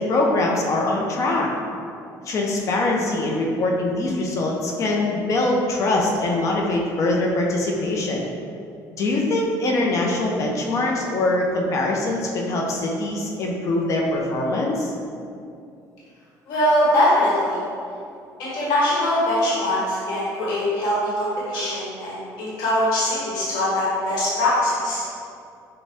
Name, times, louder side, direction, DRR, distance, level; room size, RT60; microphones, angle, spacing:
voice 1, 0.0-1.5 2.3-8.2 9.0-14.9, left 2 dB, 45° left, -1 dB, 0.6 m, -23 dB
voice 2, 16.4-17.6 18.4-25.0, left 1 dB, 85° left, -8 dB, 1.4 m, -22 dB
6.4 x 2.2 x 3.5 m, 2.4 s
cardioid pair, 130°, 7 cm